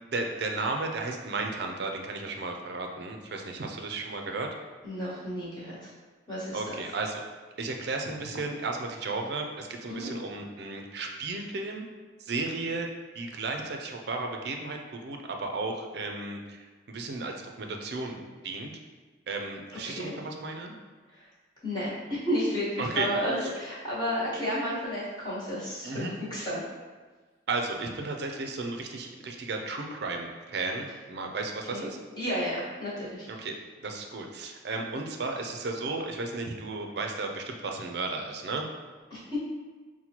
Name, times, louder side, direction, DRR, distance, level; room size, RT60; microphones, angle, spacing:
voice 1, 0.1-4.5 6.5-7.2 7.6-11.8 12.2-12.9 13.1-18.7 19.3-20.7 22.8-23.1 23.4-23.5 25.8-26.1 27.5-32.0 33.3-33.5 33.8-38.7, right 3 dB, 60° right, 3 dB, 0.4 m, -34 dB
voice 2, 4.8-5.9 6.3-6.7 9.9-10.1 19.8-20.2 21.1-21.2 21.6-26.6 31.7-31.9 32.1-33.3 39.1-39.2, equal, 25° left, -9 dB, 1.3 m, -32 dB
5.7 x 2.1 x 2.9 m, 1.4 s
head